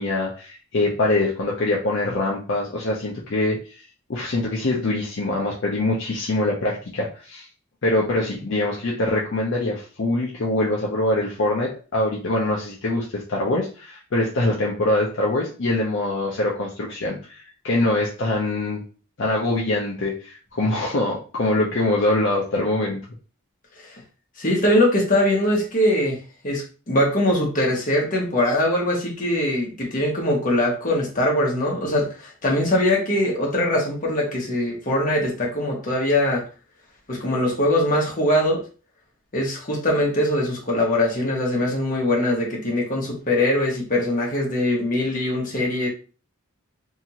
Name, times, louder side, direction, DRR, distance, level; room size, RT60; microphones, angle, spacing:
voice 1, 0.0-3.6 4.1-7.5 7.8-18.8 19.2-23.0, left 2 dB, 55° left, -3 dB, 0.5 m, -24 dB
voice 2, 24.4-26.2 26.4-36.4 37.1-38.6 39.3-45.9, left 1 dB, 35° left, -2 dB, 0.9 m, -22 dB
2.8 x 2.5 x 2.8 m, 0.36 s
head